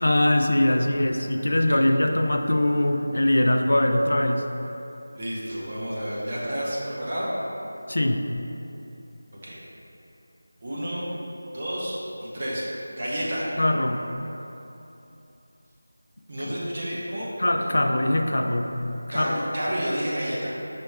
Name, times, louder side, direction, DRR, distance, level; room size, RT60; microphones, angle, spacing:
voice 1, 0.0-4.5 7.9-8.2 13.6-14.0 16.4-16.5 17.4-18.7 19.1-19.4, left 1 dB, 80° left, 5 dB, 0.4 m, -22 dB
voice 2, 5.1-7.3 9.3-9.6 10.6-11.0 11.5-12.6 13.0-13.5 16.3-17.3 17.6-17.7 19.1-20.6, equal, 35° right, -7 dB, 0.7 m, -30 dB
5.2 x 2.3 x 4.4 m, 3.0 s
figure-of-eight pair, 175°, 0 cm